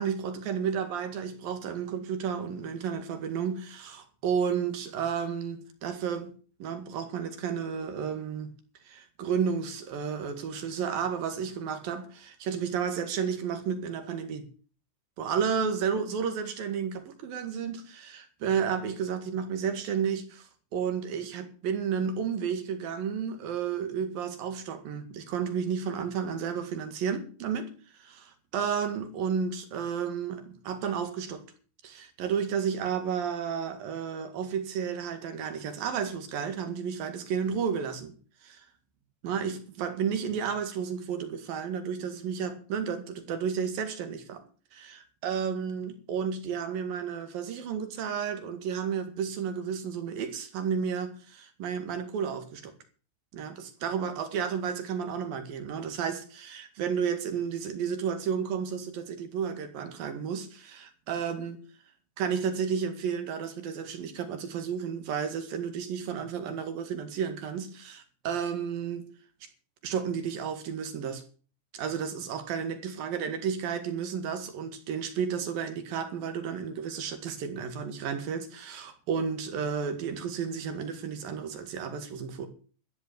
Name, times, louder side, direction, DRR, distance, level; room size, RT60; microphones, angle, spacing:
voice 1, 0.0-6.3 6.6-8.5 8.9-14.4 15.2-27.7 28.0-31.5 31.8-38.1 38.4-38.7 39.2-44.4 44.7-52.7 53.3-61.6 62.2-69.1 69.4-69.5 69.8-71.2 71.7-82.5, right 7 dB, 60° right, 3.4 m, -32 dB
14.0 x 10.5 x 6.8 m
omnidirectional pair, 5.2 m